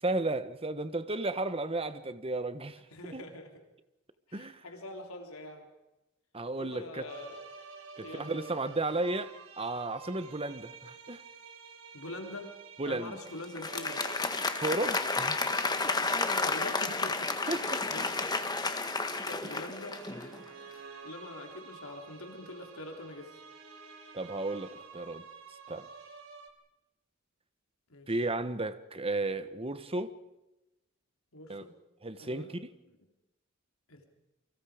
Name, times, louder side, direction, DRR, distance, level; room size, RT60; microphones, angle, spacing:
voice 1, 0.0-2.8 3.1-3.2 4.3-4.6 6.3-7.1 8.0-9.3 9.6-11.2 12.8-13.2 14.6-15.5 15.8-15.9 17.5-17.8 24.1-25.2 25.7-25.9 28.1-30.1 31.5-31.7 32.0-32.7, right 2 dB, 25° right, 1.3 m, -34 dB
voice 2, 2.9-3.6 4.3-5.7 6.6-7.5 8.0-8.5 11.9-12.5 12.8-14.0 16.4-17.3 17.9-18.9 19.2-20.4 21.0-23.4 27.9-28.2 31.3-31.7 32.2-32.5 32.9-33.0 33.9-34.0, left 2 dB, 85° left, 3.7 m, -44 dB
sound 1, 7.1-26.5, right 5 dB, 75° right, 4.2 m, -50 dB
Applause, 13.4-20.4, left 3 dB, 20° left, 1.7 m, -31 dB
29.5 x 24.5 x 5.2 m
head